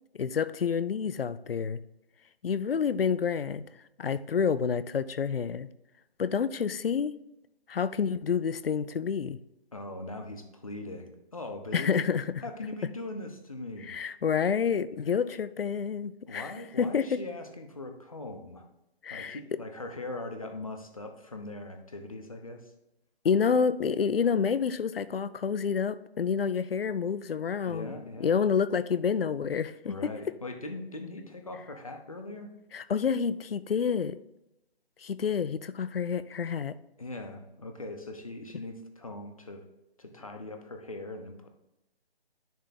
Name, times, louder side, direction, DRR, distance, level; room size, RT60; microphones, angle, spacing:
voice 1, 0.2-1.8 2.4-3.6 4.0-5.7 6.2-7.1 7.7-9.4 11.7-12.2 13.9-17.2 19.0-19.4 23.2-30.1 32.7-34.2 35.0-36.7, left 6 dB, 65° left, 15 dB, 0.5 m, -28 dB
voice 2, 9.7-12.1 12.4-14.0 16.3-18.7 19.1-22.7 27.7-28.3 29.9-32.5 37.0-39.6 40.0-41.5, left 2 dB, 35° left, 5 dB, 0.8 m, -40 dB
10.5 x 3.5 x 4.0 m, 0.89 s
hypercardioid pair, 180°, 31 cm